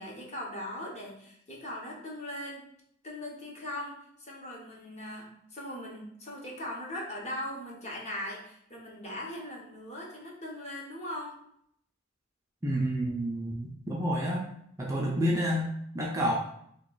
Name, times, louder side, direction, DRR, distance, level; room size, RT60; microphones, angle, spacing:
voice 1, 0.0-2.6 3.0-11.4, left 1 dB, 30° left, -2 dB, 0.8 m, -40 dB
voice 2, 12.6-14.5 14.8-16.3, equal, 15° right, -2 dB, 0.4 m, -29 dB
3.0 x 2.3 x 3.7 m, 0.69 s
head